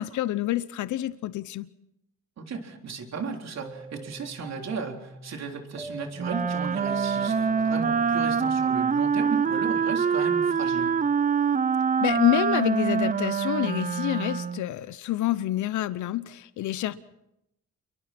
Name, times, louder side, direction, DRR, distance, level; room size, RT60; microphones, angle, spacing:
voice 1, 0.0-1.7 12.0-16.9, left 14 dB, 75° left, 15 dB, 0.8 m, -27 dB
voice 2, 2.4-10.9, right 5 dB, 60° right, 3 dB, 3.8 m, -35 dB
sound 1, 3.6-9.8, equal, 5° right, 6.3 m, -42 dB
Wind instrument woodwind instrument, 6.2-14.7, right 6 dB, 25° right, 0.7 m, -25 dB
29.0 x 23.0 x 4.4 m, 0.82 s
cardioid pair, 90°, 30 cm